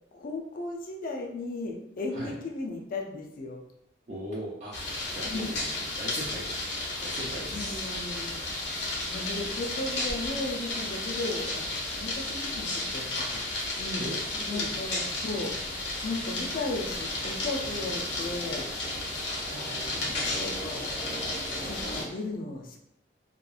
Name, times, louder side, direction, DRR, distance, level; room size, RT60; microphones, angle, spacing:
voice 1, 0.1-3.6 5.2-5.5 7.5-8.5 9.1-13.5 13.8-14.0 14.5-15.6 16.0-18.7 20.3-20.9 21.6-22.8, left 2 dB, 50° left, 1 dB, 0.4 m, -35 dB
voice 2, 4.1-6.6 7.0-7.9 14.0-14.7 19.2-20.4, equal, 40° right, -6 dB, 0.5 m, -40 dB
sound 1, 4.7-22.0, left 2 dB, 70° left, 0.8 m, -33 dB
2.8 x 2.3 x 2.3 m, 0.79 s
head